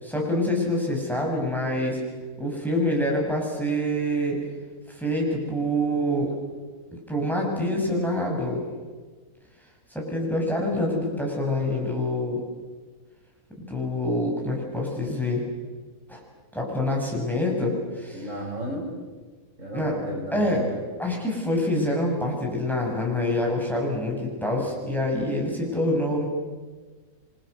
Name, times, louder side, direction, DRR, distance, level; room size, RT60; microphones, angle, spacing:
voice 1, 0.0-2.0 2.4-4.4 4.9-6.3 7.1-8.6 9.9-12.4 13.6-15.4 16.1-16.2 16.5-18.2 19.7-20.0 20.3-20.6 21.0-26.3, left 1 dB, ahead, -1 dB, 6.6 m, -26 dB
voice 2, 18.1-18.9 19.6-20.8, right 1 dB, 65° right, -2 dB, 7.3 m, -34 dB
29.0 x 24.5 x 6.7 m, 1.4 s
omnidirectional pair, 1.4 m